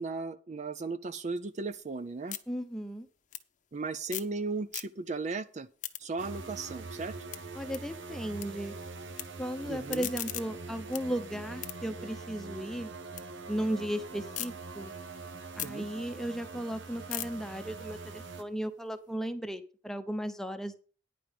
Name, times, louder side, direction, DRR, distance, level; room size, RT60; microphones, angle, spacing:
voice 1, 0.0-2.4 3.7-5.7 6.0-7.1 9.7-10.1 15.6-15.8, right 3 dB, 40° right, 0.5 m, -36 dB
sound 1, 1.4-4.4 4.6-5.3 5.6-8.5 8.8-9.2 9.7-13.3 13.6-14.5 14.9-19.1, left 13 dB, 40° left, 0.8 m, -43 dB
voice 2, 2.5-3.1 7.5-8.7 9.4-12.9 13.5-14.9 15.6-20.8, equal, ahead, 0.8 m, -36 dB
sound 2, 6.2-18.4, right 3 dB, 80° right, 1.1 m, -43 dB
10.0 x 5.3 x 7.6 m
head